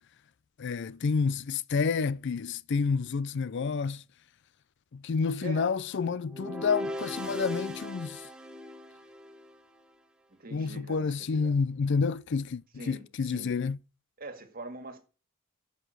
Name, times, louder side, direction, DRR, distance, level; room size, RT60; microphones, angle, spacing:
voice 1, 0.6-4.0 4.9-8.3 10.5-13.8, left 5 dB, 55° left, 0.4 m, -29 dB
voice 2, 5.4-5.7 10.3-11.6 12.8-13.5 14.2-15.0, right 2 dB, 45° right, 1.9 m, -43 dB
sound 1, 6.3-9.6, left 1 dB, 5° right, 1.0 m, -37 dB
9.4 x 5.8 x 6.6 m
head